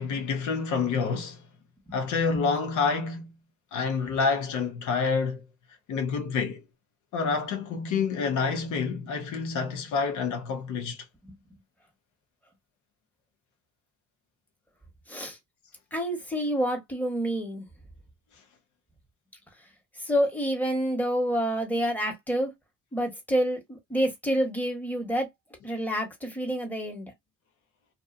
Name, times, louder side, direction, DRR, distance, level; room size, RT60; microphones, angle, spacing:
voice 1, 0.0-1.4 1.9-3.4 3.7-5.4 5.9-6.6 7.1-11.0, left 5 dB, 75° left, 0.7 m, -28 dB
voice 2, 15.9-17.7 20.0-22.5 22.9-25.3 25.6-27.1, equal, 5° left, 1.1 m, -28 dB
2.5 x 2.3 x 2.5 m
cardioid pair, 90°, 30 cm